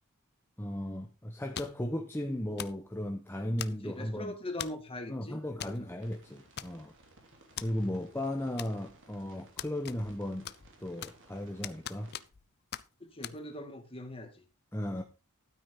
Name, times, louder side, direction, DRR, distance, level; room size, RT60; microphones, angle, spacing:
voice 1, 0.6-4.4 5.1-6.9 7.6-10.5 10.8-12.1 14.7-15.0, left 1 dB, 10° left, 1.1 m, -36 dB
sound 1, 1.5-1.9 2.6-2.8 3.6-4.0 4.6-4.9 5.6-5.8 6.1-6.2 6.6-7.0 7.6-7.7 8.6-9.0 9.6-10.2 10.4-11.3 11.6-12.4 12.7-12.9 13.2-13.4, left 10 dB, 50° left, 0.6 m, -41 dB
voice 2, 3.8-5.7 13.0-14.4, left 1 dB, 25° left, 2.3 m, -41 dB
sound 2, 6.0-12.3, right 2 dB, 60° right, 3.3 m, -59 dB
12.5 x 8.9 x 3.9 m
head